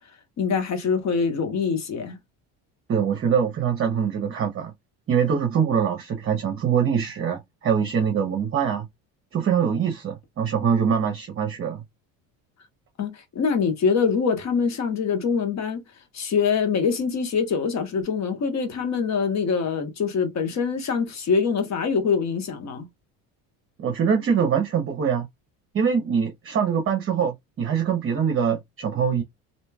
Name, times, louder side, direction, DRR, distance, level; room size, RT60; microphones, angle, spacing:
voice 1, 0.4-2.2 13.0-15.8 16.1-22.9, left 5 dB, 45° left, 1.2 m, -24 dB
voice 2, 2.9-4.7 5.1-8.9 9.3-11.8 23.8-25.3 25.7-29.2, right 7 dB, 35° right, 0.8 m, -23 dB
3.1 x 2.7 x 2.2 m
supercardioid pair, 90°, 37 cm